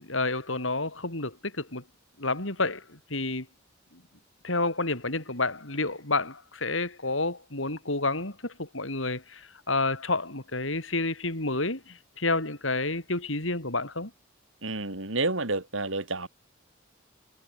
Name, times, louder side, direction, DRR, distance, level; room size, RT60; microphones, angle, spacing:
voice 1, 0.0-1.8 2.2-3.5 4.4-14.1, left 3 dB, 75° left, 6.1 m, -30 dB
voice 2, 14.6-16.3, right 2 dB, 75° right, 4.9 m, -29 dB
head